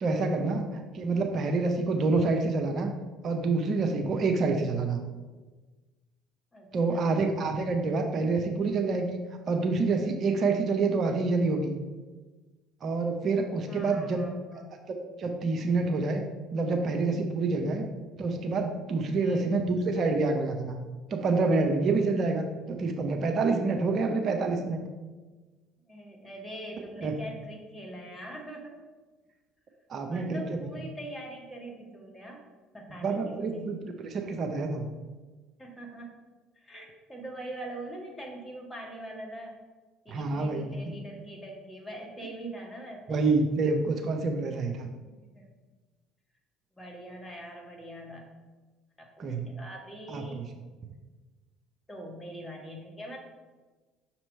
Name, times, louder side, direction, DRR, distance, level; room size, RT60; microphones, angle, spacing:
voice 1, 0.0-2.9 3.2-5.0 6.7-9.2 9.5-11.8 12.8-14.6 14.9-16.2 16.5-17.9 18.2-20.8 21.1-24.8 27.0-27.1 29.9-30.6 33.0-34.9 40.1-40.7 43.1-44.9 49.2-49.5 50.1-50.4, right 3 dB, 50° right, 4 dB, 0.6 m, -27 dB
voice 2, 6.5-7.1 13.7-14.7 19.2-19.6 25.8-28.8 30.1-32.4 32.7-33.8 35.6-36.1 36.5-39.6 40.0-43.4 45.2-45.5 46.8-48.3 49.0-50.4 51.9-53.2, right 1 dB, 15° left, 0 dB, 1.6 m, -43 dB
6.2 x 3.0 x 5.3 m, 1.3 s
hypercardioid pair, 60°, 0 cm